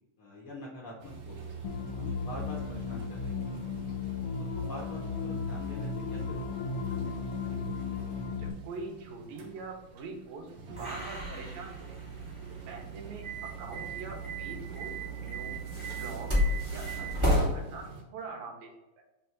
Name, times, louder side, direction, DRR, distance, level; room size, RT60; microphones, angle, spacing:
voice 1, 0.2-1.4 2.0-3.5 4.5-6.6, left 1 dB, 75° left, -4 dB, 1.2 m, -45 dB
sound 1, 1.0-18.0, right 3 dB, 65° right, 2.2 m, -48 dB
sound 2, 1.6-8.5, left 5 dB, 90° left, 1.6 m, -35 dB
voice 2, 8.4-10.5 10.8-11.8 12.7-15.6 16.0-16.3 16.7-18.7, right 4 dB, 85° right, 1 dB, 2.8 m, -43 dB
sound 3, 10.7-17.5, equal, 15° right, 1.0 m, -32 dB
6.1 x 3.4 x 5.9 m, 0.97 s
omnidirectional pair, 3.9 m